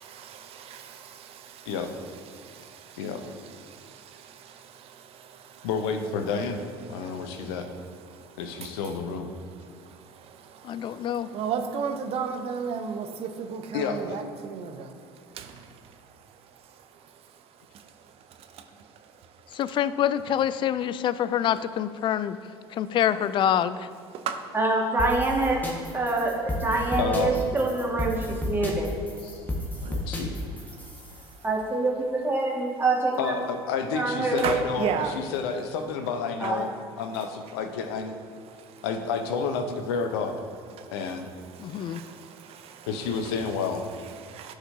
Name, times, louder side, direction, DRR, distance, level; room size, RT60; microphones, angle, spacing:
voice 1, 0.0-5.7 6.9-8.9 9.4-19.6 21.5-21.6 22.7-23.0 24.1-24.6 29.3-30.2 30.5-31.4 34.4-35.2 36.4-36.6 38.5-38.9 40.7-44.5, right 6 dB, 50° right, 6 dB, 0.7 m, -38 dB
voice 2, 5.6-7.7 8.4-9.3 13.7-14.2 25.9-26.0 27.0-27.4 29.2-29.4 29.8-30.4 33.2-34.9 35.1-36.7 37.0-38.1 38.8-40.4 40.9-41.3 42.9-43.8, left 5 dB, 65° left, 7 dB, 0.8 m, -30 dB
voice 3, 10.6-11.3 19.5-22.4 22.7-23.9 41.6-42.0, left 10 dB, 40° left, 15 dB, 0.4 m, -26 dB
voice 4, 24.5-25.6 25.9-28.9 31.4-33.3 33.9-34.5 36.4-36.7, right 2 dB, 15° right, -2 dB, 1.8 m, -25 dB
sound 1, 25.0-31.3, left 1 dB, 15° left, 1.5 m, -33 dB
14.0 x 4.9 x 2.8 m, 2.1 s
figure-of-eight pair, 65°, 13 cm